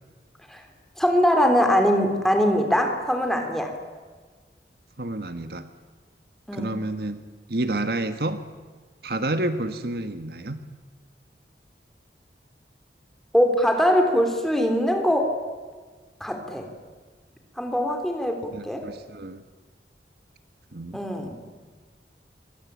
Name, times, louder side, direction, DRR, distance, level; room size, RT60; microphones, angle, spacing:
voice 1, 1.0-3.7 6.5-6.7 13.3-15.3 16.2-16.7 17.6-18.8 20.9-21.4, equal, ahead, 4 dB, 3.8 m, -22 dB
voice 2, 5.0-5.7 6.5-7.2 7.5-8.4 9.0-10.6 18.5-19.4 20.7-21.0, right 2 dB, 60° right, 9 dB, 1.5 m, -29 dB
26.0 x 24.0 x 8.6 m, 1.5 s
head